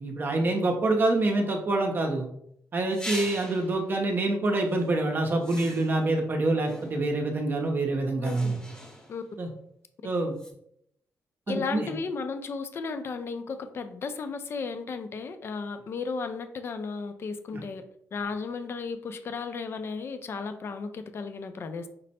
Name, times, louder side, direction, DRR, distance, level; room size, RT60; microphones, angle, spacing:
voice 1, 0.0-2.3 2.7-8.5 9.4-9.5 10.0-10.3 11.5-11.9, right 2 dB, 35° right, 2 dB, 0.7 m, -26 dB
sound 1, 2.9-3.8 4.7-4.9 5.4-6.1 6.7-7.3 8.2-9.3 10.4-10.5, left 1 dB, 15° left, 0.9 m, -41 dB
voice 2, 8.2-8.6 9.1-9.2 11.5-17.8 18.1-21.9, left 4 dB, 45° left, 9 dB, 0.4 m, -34 dB
5.2 x 2.1 x 4.1 m, 0.73 s
cardioid pair, 110°, 6 cm